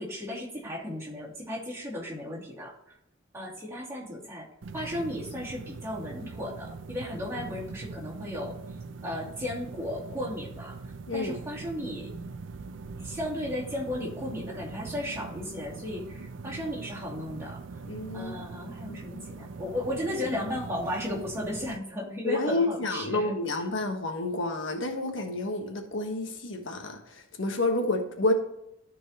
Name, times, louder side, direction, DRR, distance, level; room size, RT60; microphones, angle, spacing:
voice 1, 0.0-2.7 3.3-4.5 4.7-8.6 9.0-10.8 11.1-12.1 13.0-17.6 18.1-23.3, left 1 dB, 15° right, -5 dB, 2.5 m, -35 dB
sound 1, 4.6-21.8, right 4 dB, 70° right, 0.5 m, -42 dB
voice 2, 17.9-19.0 22.2-28.3, left 2 dB, 75° left, 4 dB, 1.3 m, -30 dB
13.5 x 4.6 x 2.9 m, 0.82 s
head